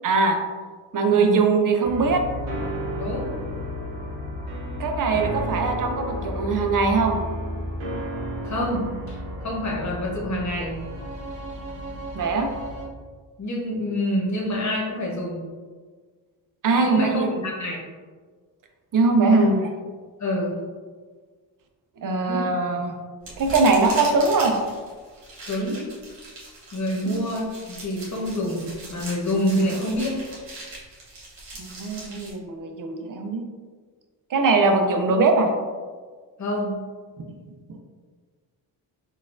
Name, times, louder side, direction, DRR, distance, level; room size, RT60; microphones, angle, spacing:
voice 1, 0.0-0.4 0.9-2.2 4.8-7.2 12.2-12.5 16.6-17.4 18.9-19.7 22.0-22.9 23.4-24.6 27.0-27.2 31.6-33.4 34.3-35.5 37.7-37.8, right 3 dB, 45° right, 4 dB, 0.5 m, -21 dB
voice 2, 1.1-1.4 3.0-3.3 8.4-10.8 13.4-15.4 16.8-17.8 19.3-19.5 20.2-20.6 22.3-22.5 25.4-25.8 26.7-30.2 36.4-36.8, equal, 40° left, -2 dB, 1.0 m, -27 dB
grabby bow sample, 1.8-12.9, equal, 85° right, 0.8 m, -32 dB
sound 1, 23.2-32.3, right 2 dB, 70° right, 1.4 m, -39 dB
3.9 x 2.4 x 2.5 m, 1.5 s
cardioid pair, 75°, 45 cm